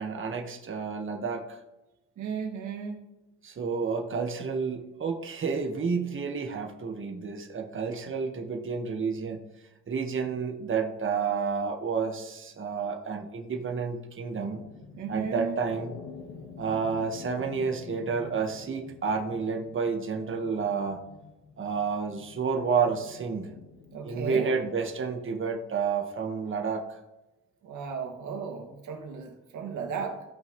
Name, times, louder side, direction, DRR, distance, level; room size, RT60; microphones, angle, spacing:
voice 1, 0.0-1.6 3.4-9.4 9.9-14.6 15.1-15.9 16.6-21.0 21.6-23.5 24.0-26.8, right 5 dB, 40° right, 3 dB, 1.5 m, -30 dB
voice 2, 2.2-3.0 14.9-15.6 23.9-24.6 27.6-30.2, right 6 dB, 75° right, 2 dB, 2.1 m, -35 dB
sound 1, 14.4-24.7, left 5 dB, 80° left, 1.4 m, -48 dB
16.5 x 5.6 x 3.2 m, 1.0 s
cardioid pair, 90°, 30 cm